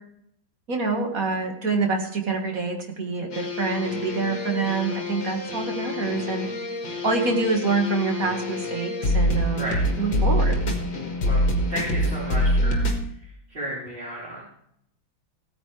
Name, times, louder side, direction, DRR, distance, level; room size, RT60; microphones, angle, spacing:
voice 1, 0.7-6.5 7.0-9.7 10.0-10.6, right 3 dB, 45° right, 3 dB, 2.0 m, -26 dB
sound 1, 3.3-13.1, left 1 dB, 60° left, 2.2 m, -26 dB
voice 2, 9.5-9.8 11.2-11.4 11.7-12.8 13.5-14.4, right 1 dB, 25° right, -8 dB, 3.9 m, -33 dB
16.5 x 9.5 x 3.2 m, 0.72 s
omnidirectional pair, 2.1 m